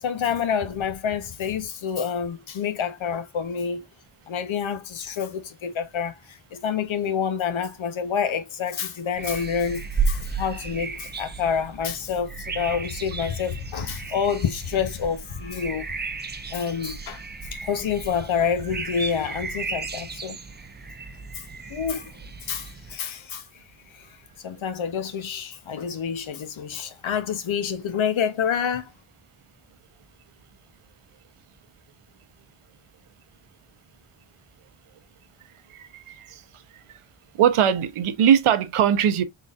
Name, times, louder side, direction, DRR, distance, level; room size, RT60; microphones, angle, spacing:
voice 1, 0.0-3.9 4.3-16.0 16.5-17.2 17.5-20.4 21.3-21.4 21.7-22.1 22.5-23.5 23.9-24.1 24.4-28.9, left 7 dB, 70° left, 0.8 m, -28 dB
sound 1, 9.1-23.0, right 4 dB, 20° right, 0.4 m, -34 dB
voice 2, 35.7-36.4 36.9-37.0 37.4-39.2, right 9 dB, 80° right, 0.7 m, -21 dB
3.9 x 3.7 x 2.3 m
wide cardioid pair, 145°, 49 cm